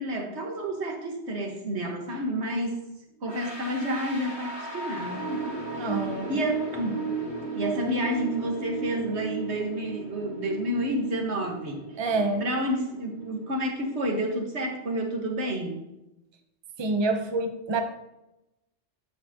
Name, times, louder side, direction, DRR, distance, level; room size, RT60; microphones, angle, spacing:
voice 1, 0.0-2.8 3.2-5.9 6.3-7.1 7.5-11.8 12.4-15.9, equal, 75° right, 1 dB, 1.8 m, -30 dB
sound 1, 3.3-14.1, right 4 dB, 20° left, 2.0 m, -36 dB
voice 2, 5.8-6.4 12.0-12.4 16.8-17.8, right 3 dB, 25° right, 5 dB, 0.8 m, -27 dB
11.5 x 7.6 x 2.9 m, 0.92 s
omnidirectional pair, 1.1 m